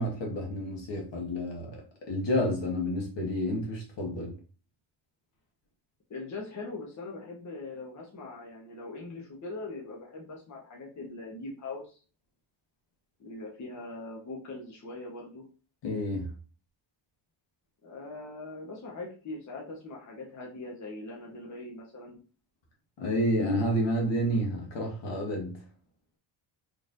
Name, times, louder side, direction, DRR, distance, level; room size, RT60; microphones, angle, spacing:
voice 1, 0.0-4.3 15.8-16.3 23.0-25.7, equal, 60° left, 1.5 m, -30 dB
voice 2, 6.1-12.0 13.2-15.4 17.8-22.2, left 2 dB, 35° left, 1.1 m, -41 dB
3.9 x 3.4 x 2.6 m
cardioid pair, 110°, 49 cm